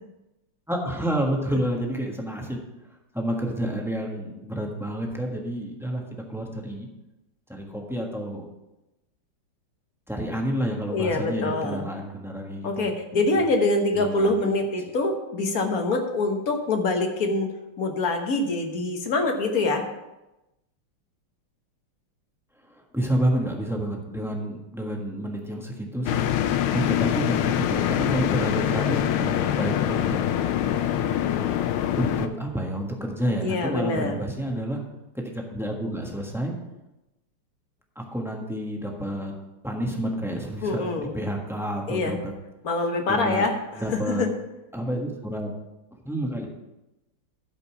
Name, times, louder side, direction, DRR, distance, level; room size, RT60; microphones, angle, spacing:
voice 1, 0.7-2.6 3.1-6.9 7.5-8.4 10.1-12.9 13.9-14.5 22.7-26.2 26.7-30.2 32.0-34.8 35.1-36.5 37.9-39.3 39.6-42.3 43.1-43.5 43.7-44.2 44.7-45.5 46.0-46.5, right 1 dB, ahead, 0 dB, 0.9 m, -29 dB
voice 2, 10.9-11.9 12.6-19.8 33.4-34.2 40.6-41.1 41.9-42.2 42.6-43.5 43.9-44.3, left 2 dB, 50° left, 4 dB, 1.4 m, -25 dB
sound 1, 26.1-32.3, left 10 dB, 80° left, 1.5 m, -24 dB
12.0 x 5.3 x 5.9 m, 0.96 s
omnidirectional pair, 2.4 m